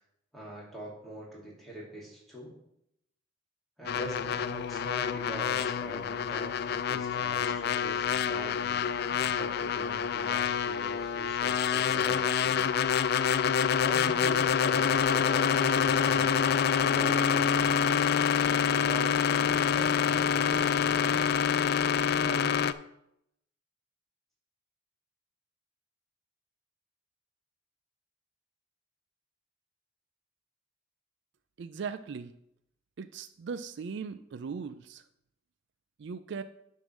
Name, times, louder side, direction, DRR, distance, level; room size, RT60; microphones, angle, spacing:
voice 1, 0.3-2.5 3.8-12.7 13.8-16.3 16.8-17.8 18.4-21.4 22.2-22.5, equal, ahead, -5 dB, 2.6 m, -43 dB
sound 1, 3.9-22.7, left 7 dB, 55° left, 0.3 m, -27 dB
voice 2, 31.6-32.3 33.0-35.0 36.0-36.4, right 5 dB, 65° right, 12 dB, 0.4 m, -38 dB
10.0 x 3.8 x 6.2 m, 0.77 s
head